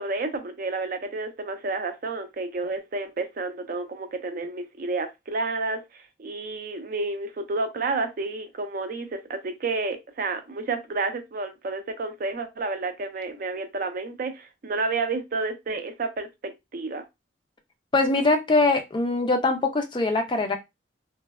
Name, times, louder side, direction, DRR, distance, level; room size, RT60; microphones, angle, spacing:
voice 1, 0.0-17.0, right 3 dB, 45° right, 0.4 m, -30 dB
voice 2, 17.9-20.6, left 3 dB, 25° left, 0.3 m, -22 dB
3.1 x 2.1 x 2.2 m
head